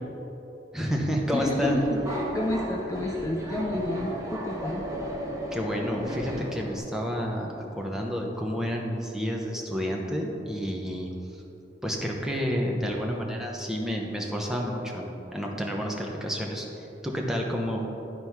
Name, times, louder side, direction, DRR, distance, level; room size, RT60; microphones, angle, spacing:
voice 1, 0.7-1.8 5.5-11.1 11.8-18.0, equal, 5° right, -1 dB, 0.9 m, -30 dB
Subway metro underground, 1.1-6.8, equal, 20° right, 1.1 m, -34 dB
voice 2, 1.3-4.8, left 1 dB, 20° left, 0 dB, 0.4 m, -30 dB
11.0 x 4.3 x 4.7 m, 3.0 s
head